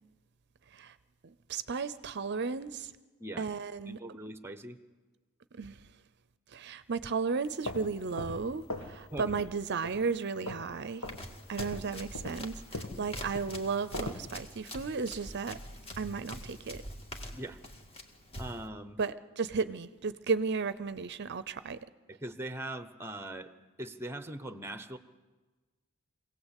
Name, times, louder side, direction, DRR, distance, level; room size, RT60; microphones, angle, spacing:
voice 1, 1.2-2.9 3.4-4.0 5.5-5.9 6.5-11.1 11.5-15.6 16.0-16.8 19.0-21.8, right 5 dB, 55° right, 0.6 m, -34 dB
voice 2, 3.9-4.8 9.1-9.3 17.3-17.6 18.4-19.0 22.1-23.5 23.8-25.0, right 1 dB, 10° right, 0.9 m, -41 dB
sound 1, 7.4-9.0 9.2-9.6 9.8-10.7 11.0-11.2 11.6-14.3, left 2 dB, 90° left, 2.0 m, -40 dB
Run, 11.0-18.7, left 1 dB, 25° left, 2.0 m, -45 dB
24.5 x 17.5 x 8.3 m
head